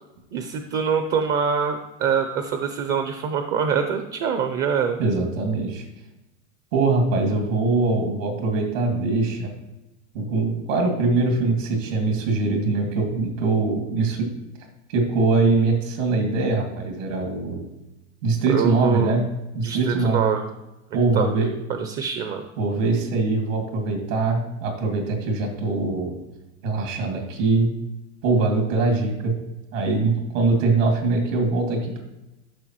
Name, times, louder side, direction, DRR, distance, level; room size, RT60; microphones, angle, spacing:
voice 1, 0.3-5.0 18.5-19.1 19.6-20.4 21.1-21.3 21.7-22.4, right 7 dB, 30° right, 7 dB, 0.6 m, -24 dB
voice 2, 5.0-5.8 6.7-9.5 10.1-14.3 14.9-17.7 18.2-19.2 19.5-20.2 20.9-21.5 22.6-26.2 26.6-27.7 28.2-29.3 29.7-32.0, right 3 dB, 80° right, 1 dB, 2.5 m, -22 dB
12.5 x 5.8 x 3.1 m, 0.97 s
supercardioid pair, 150°, 38 cm